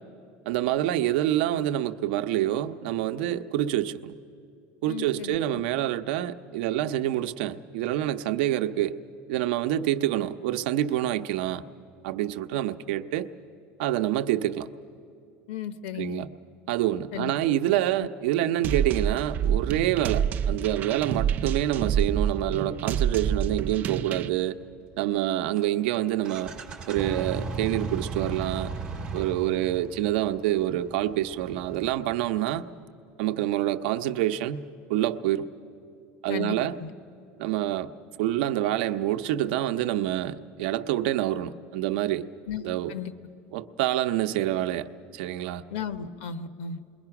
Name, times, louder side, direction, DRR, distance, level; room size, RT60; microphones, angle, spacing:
voice 1, 0.5-4.1 4.8-8.9 9.3-11.6 12.0-13.3 13.8-14.7 15.9-16.3 16.7-24.6 25.0-26.5 26.9-28.7 29.1-32.6 33.2-34.6 34.9-35.5 36.2-36.8 37.4-37.9 38.2-42.3 42.6-42.9 43.5-45.6, right 13 dB, 85° right, 0.7 m, -27 dB
voice 2, 4.9-5.6 15.5-16.2 17.1-17.3 36.3-36.9 42.5-42.6 42.9-43.1 45.7-46.8, left 8 dB, 90° left, 1.1 m, -35 dB
sound 1, 18.6-24.3, right 8 dB, 35° right, 0.5 m, -27 dB
sound 2, 19.2-24.6 25.6-25.7 25.9-26.0 26.2-32.4, right 4 dB, 15° right, 2.3 m, -38 dB
28.0 x 21.5 x 5.9 m
cardioid pair, 175°, 5 cm